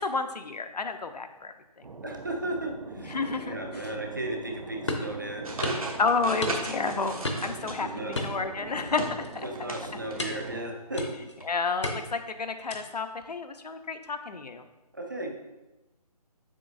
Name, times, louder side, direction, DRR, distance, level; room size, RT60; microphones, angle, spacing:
voice 1, 0.0-1.5 3.0-3.9 6.0-9.5 11.5-14.7, left 4 dB, 75° left, 8 dB, 0.7 m, -31 dB
sound 1, 1.8-10.6, right 3 dB, 80° right, 0.8 m, -43 dB
voice 2, 2.0-3.2 3.4-5.7 7.8-8.3 9.4-11.0 14.9-15.3, right 2 dB, 30° right, 2 dB, 0.6 m, -35 dB
sound 2, 4.9-5.1 5.6-5.9 6.4-6.8 7.2-7.6 8.1-8.9 9.2-9.5 10.2-10.5 11.0-11.4 11.8-12.2 12.7-13.0, left 2 dB, 45° left, 0.8 m, -33 dB
sound 3, 5.4-8.3 8.7-9.8 10.1-10.2 11.4-11.5, right 2 dB, 60° right, 1.3 m, -36 dB
7.5 x 6.2 x 2.6 m, 1.0 s
hypercardioid pair, 180°, 21 cm